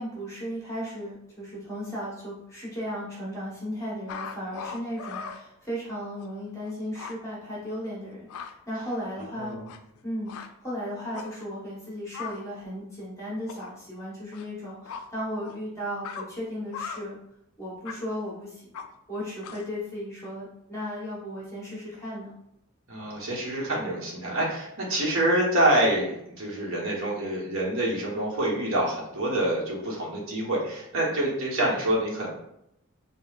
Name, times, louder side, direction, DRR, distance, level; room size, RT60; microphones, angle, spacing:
voice 1, 0.0-9.5 10.0-10.3 10.6-17.2 17.6-18.7 19.1-22.3, equal, 15° left, -6 dB, 0.9 m, -35 dB
sound 1, 4.1-5.4 6.2-6.3 6.7-6.8 7.0-7.1 8.1-8.5 9.2-10.0 10.3-10.5 11.1-11.4 12.1-12.4 13.5-13.8 14.3-14.5 14.8-15.0 15.4-15.6 16.0-16.3 16.7-17.1 17.9-18.0 18.7-18.9 19.4-19.7, left 6 dB, 75° left, 0.3 m, -38 dB
voice 2, 22.9-32.3, right 1 dB, 65° right, -4 dB, 1.1 m, -26 dB
5.2 x 2.3 x 2.3 m, 0.79 s
head